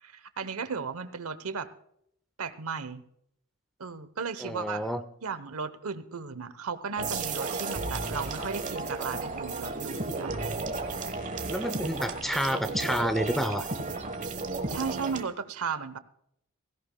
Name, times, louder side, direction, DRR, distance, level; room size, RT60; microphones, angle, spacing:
voice 1, 0.0-1.7 2.4-3.0 3.8-4.9 5.2-10.5 14.7-16.0, right 5 dB, 80° right, 13 dB, 0.9 m, -35 dB
voice 2, 4.4-5.0 11.5-13.7, equal, ahead, 10 dB, 0.6 m, -29 dB
sound 1, 7.0-15.2, right 3 dB, 35° right, 1.2 m, -33 dB
17.0 x 16.5 x 2.3 m, 0.73 s
head